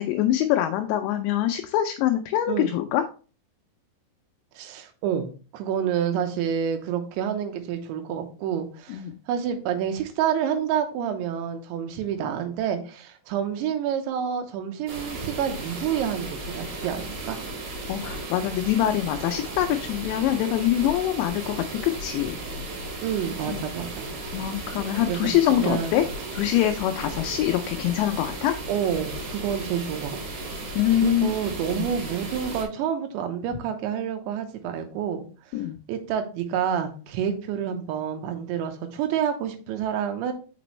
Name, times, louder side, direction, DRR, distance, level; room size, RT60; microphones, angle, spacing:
voice 1, 0.0-3.0 8.9-9.1 17.9-22.4 23.5-23.6 24.3-26.1 26.3-28.5 30.8-31.3 31.7-31.8 35.5-35.7, left 12 dB, 80° left, 5 dB, 2.7 m, -24 dB
voice 2, 4.6-17.4 23.0-24.1 25.1-26.0 28.7-30.4 31.0-35.2 35.9-40.3, right 8 dB, 80° right, 6 dB, 3.2 m, -28 dB
sound 1, 14.9-32.6, right 2 dB, 60° right, 3.5 m, -35 dB
6.0 x 5.9 x 3.1 m, 0.36 s
omnidirectional pair, 5.3 m